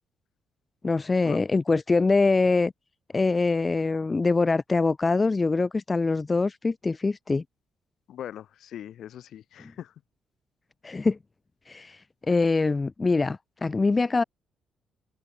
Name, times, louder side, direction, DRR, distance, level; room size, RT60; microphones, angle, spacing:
voice 1, 0.8-2.7 3.1-7.4 10.8-11.2 11.7-14.2, left 3 dB, 25° left, 0.5 m, -24 dB
voice 2, 8.1-9.9, left 11 dB, 70° left, 3.5 m, -40 dB
cardioid pair, 90°, 0 cm